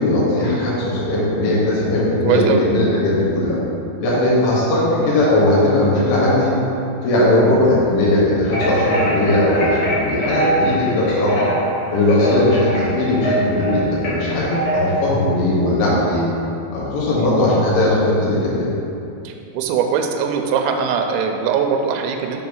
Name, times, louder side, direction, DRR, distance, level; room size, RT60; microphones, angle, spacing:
voice 1, 0.0-3.6 4.0-6.5 7.0-11.5 11.9-16.2 16.7-18.7, left 1 dB, 80° left, -7 dB, 3.8 m, -18 dB
voice 2, 2.2-2.6 17.2-17.3 19.2-22.4, right 7 dB, 85° right, 3 dB, 2.7 m, -21 dB
sound 1, 8.5-15.1, right 1 dB, 65° left, 1.7 m, -23 dB
7.5 x 3.1 x 5.4 m, 2.7 s
omnidirectional pair, 5.2 m